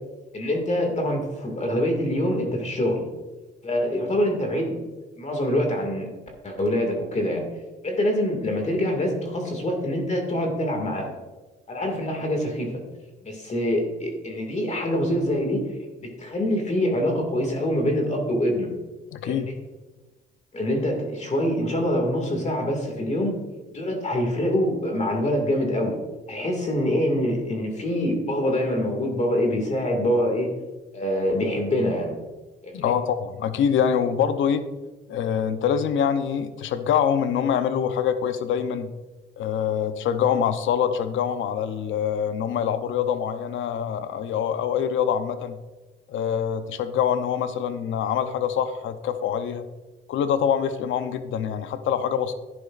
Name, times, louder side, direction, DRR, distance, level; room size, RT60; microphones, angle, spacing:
voice 1, 0.3-3.1 3.6-4.8 5.2-6.1 6.4-7.5 7.8-11.2 11.7-12.7 13.2-15.7 16.0-18.7 19.2-19.4 20.5-23.3 23.7-26.0 26.3-30.5 30.9-32.2 32.6-32.9, left 1 dB, 35° left, 2 dB, 2.1 m, -25 dB
voice 2, 19.1-19.5 32.7-34.6 35.1-38.9 39.4-45.6 46.1-49.6 50.1-52.3, left 8 dB, 75° left, 10 dB, 0.7 m, -25 dB
10.5 x 10.0 x 2.5 m, 1.2 s
cardioid pair, 90°, 20 cm